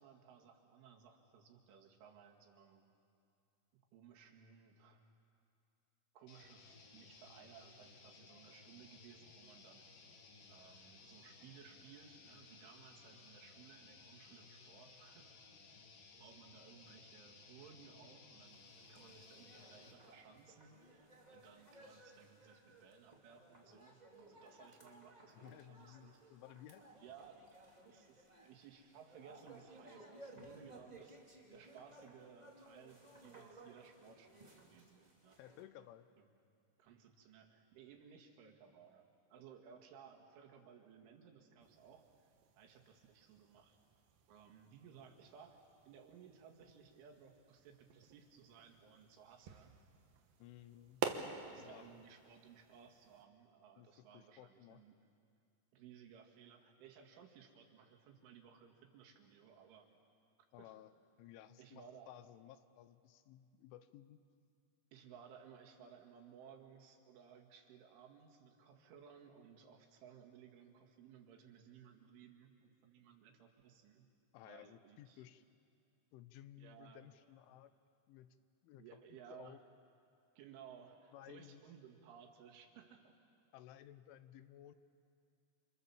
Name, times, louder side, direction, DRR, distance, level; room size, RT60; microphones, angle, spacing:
voice 1, 0.0-2.8 3.9-5.0 6.1-9.9 10.5-15.4 16.2-26.2 27.0-27.6 27.8-31.2 31.5-35.4 36.8-42.3 42.6-43.8 44.3-49.8 51.4-55.0 55.7-59.9 60.6-60.7 61.6-62.2 64.9-74.1 74.4-75.3 76.6-77.1 78.8-79.6 80.4-83.1, right 7 dB, 90° right, 1 dB, 4.6 m, -60 dB
sound 1, 6.3-20.0, left 4 dB, 55° left, 3.2 m, -60 dB
sound 2, 18.4-35.6, right 1 dB, 10° right, 2.3 m, -60 dB
voice 2, 25.3-26.8 35.4-36.1 50.4-51.1 51.6-52.0 53.8-53.9 54.1-54.8 60.5-60.9 61.2-64.2 74.3-75.4 76.1-77.7 78.1-78.4 78.6-78.8 79.3-79.6 81.1-81.6 83.5-84.8, left 12 dB, 85° left, 12 dB, 3.4 m, -57 dB
sound 3, 41.6-53.3, right 7 dB, 65° right, 2.6 m, -50 dB
30.0 x 27.5 x 7.3 m, 2.5 s
omnidirectional pair, 5.4 m